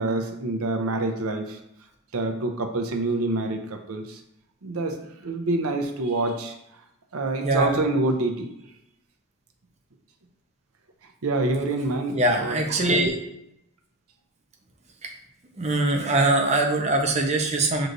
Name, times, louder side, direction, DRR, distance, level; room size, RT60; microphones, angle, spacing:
voice 1, 0.0-1.6 2.1-4.2 4.6-5.0 5.2-6.5 7.1-8.5 11.2-12.6, right 2 dB, 80° right, 5 dB, 0.6 m, -26 dB
voice 2, 12.1-13.2 15.0-15.1 15.6-17.9, right 2 dB, 30° right, 2 dB, 0.6 m, -22 dB
6.5 x 3.0 x 2.6 m, 0.81 s
head